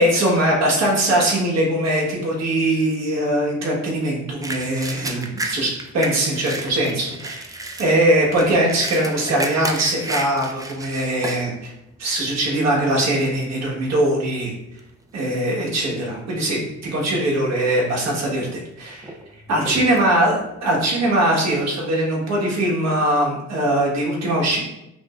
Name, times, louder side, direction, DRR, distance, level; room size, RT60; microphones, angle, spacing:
voice 1, 0.0-11.7 12.0-14.5 15.1-19.1 19.5-24.6, right 1 dB, 60° right, -3 dB, 1.3 m, -21 dB
sound 1, 4.4-11.5 12.0-12.1 12.6-13.0 13.7-13.9 14.2-15.4 15.7-16.2 16.6-16.7 17.5-18.1 18.5-21.6, right 2 dB, 10° right, 0.3 m, -32 dB
5.8 x 2.0 x 2.4 m, 0.87 s
cardioid pair, 90°, 30 cm